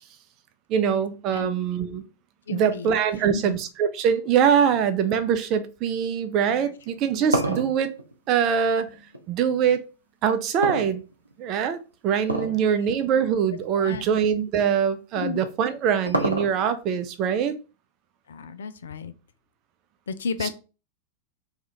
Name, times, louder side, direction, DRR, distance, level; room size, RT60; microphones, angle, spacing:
voice 1, 0.7-2.0 2.5-7.9 8.3-9.8 10.2-11.0 11.4-17.6 20.4-20.5, right 8 dB, 40° right, 0.5 m, -23 dB
voice 2, 2.5-3.6 6.4-6.6 7.2-7.4 12.5-12.9 13.7-14.1 15.1-15.4 18.3-19.1 20.1-20.5, left 5 dB, 65° left, 0.3 m, -34 dB
sound 1, 6.8-9.2 10.6-11.5 12.2-12.7 13.0-13.1 13.9-14.0 15.3-16.8, right 1 dB, 85° right, 0.6 m, -27 dB
2.8 x 2.4 x 4.0 m
figure-of-eight pair, 90°, 0 cm